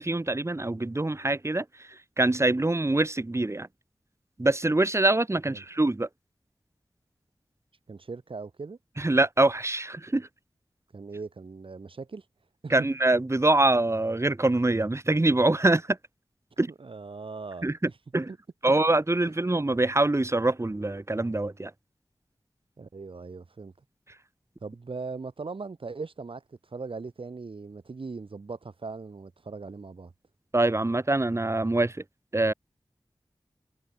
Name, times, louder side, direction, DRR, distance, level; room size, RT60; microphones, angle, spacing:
voice 1, 0.0-1.9 2.2-3.7 4.4-6.1 9.0-10.3 12.7-16.0 16.6-16.7 17.6-18.3 18.6-21.7 30.5-32.0 32.3-32.5, right 2 dB, 30° right, 1.5 m, -24 dB
voice 2, 7.9-8.8 10.9-12.2 12.6-12.9 16.7-17.7 18.3-18.4 18.6-18.7 19.3-19.4 22.8-23.7 24.6-30.1, right 4 dB, 85° right, 7.3 m, -39 dB
wide cardioid pair, 50°, 9 cm